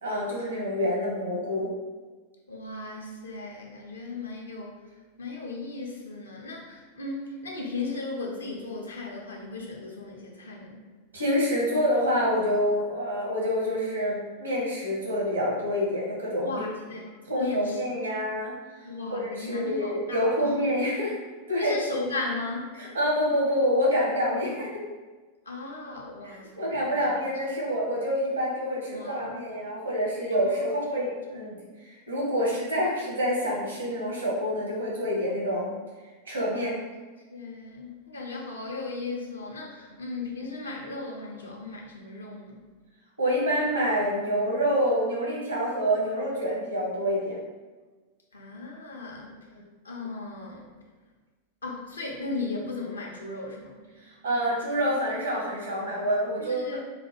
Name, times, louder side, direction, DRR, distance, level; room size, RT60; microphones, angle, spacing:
voice 1, 0.0-1.7 11.1-16.7 17.3-18.5 19.1-21.1 21.5-21.7 22.8-24.7 26.2-35.7 36.3-36.7 43.2-47.4 49.5-49.6 54.2-56.6, equal, 75° right, -3 dB, 1.1 m, -27 dB
voice 2, 2.5-4.8 5.2-10.9 16.4-17.8 18.8-20.6 21.6-22.7 24.3-24.5 25.5-27.1 28.9-29.4 30.5-30.7 36.5-36.7 37.3-42.7 48.3-49.4 49.8-50.7 51.6-53.8 56.4-56.8, left 3 dB, 75° left, -1 dB, 0.6 m, -36 dB
3.9 x 2.2 x 2.9 m, 1.3 s
figure-of-eight pair, 90°, 0 cm